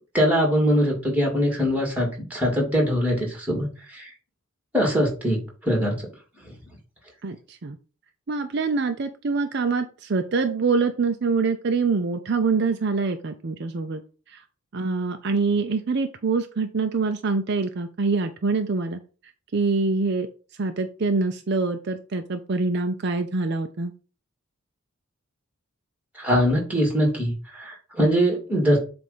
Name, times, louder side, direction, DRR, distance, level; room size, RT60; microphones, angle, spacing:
voice 1, 0.1-4.1 4.7-6.0 26.2-28.8, equal, 5° right, 0 dB, 2.1 m, -22 dB
voice 2, 7.2-7.8 8.3-14.0 14.3-14.4 14.7-19.0 19.5-20.3 20.6-23.9, right 4 dB, 50° right, 7 dB, 0.5 m, -25 dB
7.6 x 2.6 x 5.4 m, 0.36 s
head